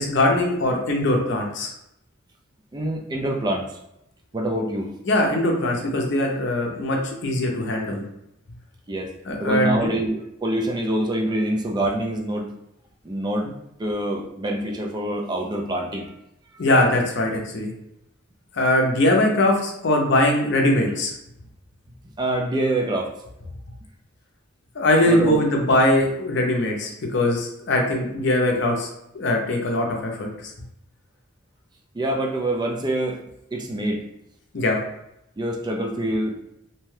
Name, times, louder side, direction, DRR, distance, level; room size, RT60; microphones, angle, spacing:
voice 1, 0.0-1.7 5.1-8.0 9.3-9.8 16.6-17.7 18.5-21.1 24.8-28.9 29.1-30.5 34.5-34.8, left 1 dB, 65° left, 1 dB, 0.6 m, -21 dB
voice 2, 2.7-3.8 4.3-4.9 8.9-9.1 9.4-12.5 13.0-13.5 13.8-16.1 22.2-23.1 25.1-25.4 31.9-33.2 33.5-34.1 35.4-36.4, right 1 dB, 20° right, 0 dB, 0.3 m, -25 dB
2.7 x 2.2 x 3.2 m, 0.82 s
head